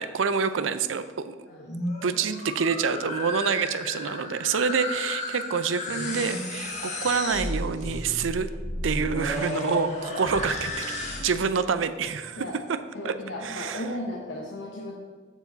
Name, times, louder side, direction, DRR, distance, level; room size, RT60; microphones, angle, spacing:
voice 1, 0.0-1.3 2.0-8.5 8.8-10.9 11.2-12.8 13.0-13.1 13.4-13.8, right 5 dB, 80° right, 12 dB, 0.5 m, -27 dB
voice 2, 1.5-1.8 12.4-12.6 12.9-14.9, left 1 dB, 70° left, -1 dB, 0.9 m, -35 dB
sound 1, 1.5-11.5, left 1 dB, 35° left, 1.5 m, -33 dB
14.0 x 4.7 x 4.0 m, 1.5 s
head